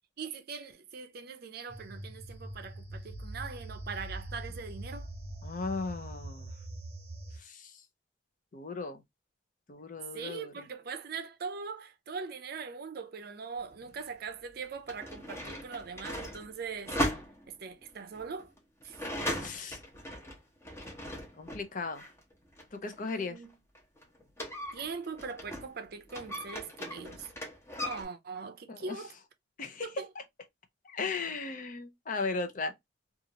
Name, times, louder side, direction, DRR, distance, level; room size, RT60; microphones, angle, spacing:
voice 1, 0.2-5.1 10.1-17.0 17.5-18.5 18.8-19.0 23.1-23.5 24.7-27.3 27.8-29.1 29.8-30.1, right 5 dB, 55° right, 0.5 m, -41 dB
sound 1, 1.7-7.4, right 1 dB, 35° right, 1.1 m, -43 dB
voice 2, 5.4-6.5 7.4-7.8 8.5-9.0 9.7-10.6 19.2-19.8 21.4-22.0 22.7-23.4 28.7-29.0 29.6-29.9 30.2-30.3 30.8-32.7, left 4 dB, 45° left, 0.6 m, -37 dB
sound 2, 13.7-13.8 14.6-21.7 21.9-25.8 26.1-28.0, equal, 15° left, 0.9 m, -38 dB
2.8 x 2.4 x 2.8 m
head